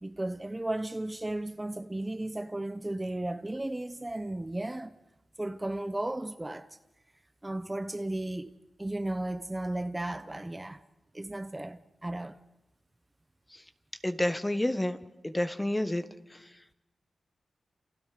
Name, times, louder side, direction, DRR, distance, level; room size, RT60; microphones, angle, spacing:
voice 1, 0.0-4.9 5.4-6.8 7.4-8.5 8.8-10.8 11.1-12.4, right 1 dB, 20° right, 1.0 m, -35 dB
voice 2, 14.0-15.0 15.2-16.0, left 1 dB, 15° left, 1.4 m, -29 dB
29.5 x 28.5 x 5.2 m
cardioid pair, 75°, 0 cm